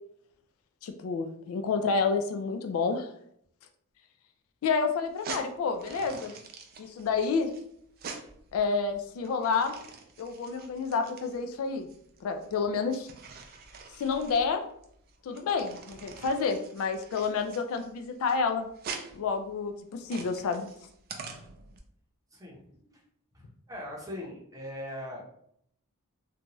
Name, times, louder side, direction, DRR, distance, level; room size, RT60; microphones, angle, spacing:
voice 1, 0.8-3.1 4.6-6.4 6.8-7.5 8.5-9.7 10.2-11.9 12.2-13.1 14.0-14.6 15.2-18.7 19.1-20.7, left 5 dB, 65° left, 6 dB, 0.3 m, -29 dB
sound 1, 5.0-21.8, right 5 dB, 45° right, 0.4 m, -45 dB
voice 2, 22.3-23.0 23.3-25.4, left 1 dB, 15° right, -2 dB, 0.7 m, -41 dB
2.7 x 2.2 x 2.9 m, 0.70 s
head